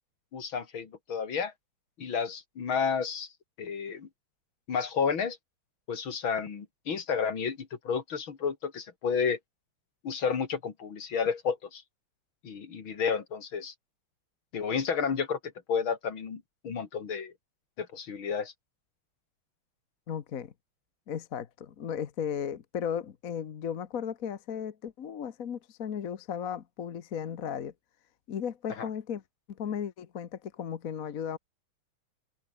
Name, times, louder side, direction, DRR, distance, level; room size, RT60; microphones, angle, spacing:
voice 1, 0.3-1.5 2.0-3.3 3.6-4.1 4.7-5.4 5.9-9.4 10.0-11.8 12.4-13.7 14.5-15.4 15.7-17.3 17.8-18.5 28.8-28.9, left 6 dB, 65° left, 3.1 m, -31 dB
voice 2, 20.1-20.5 21.1-27.7 28.3-29.2 29.5-31.4, left 8 dB, 45° left, 1.3 m, -35 dB
omnidirectional pair, 2.4 m